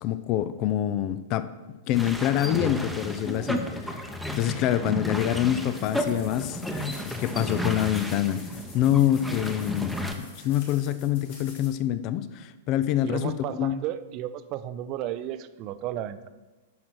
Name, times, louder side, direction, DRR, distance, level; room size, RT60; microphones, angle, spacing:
voice 1, 0.0-1.5 1.9-4.0 4.4-6.6 7.1-8.4 8.7-13.8, left 12 dB, 40° left, 14 dB, 0.5 m, -26 dB
sound 1, 1.9-10.1, left 1 dB, ahead, 0.9 m, -32 dB
sound 2, 5.7-11.7, left 3 dB, 55° left, 2.5 m, -48 dB
voice 2, 13.0-16.3, right 12 dB, 40° right, 12 dB, 0.5 m, -33 dB
9.3 x 6.1 x 4.6 m, 1.2 s
figure-of-eight pair, 100°, 0 cm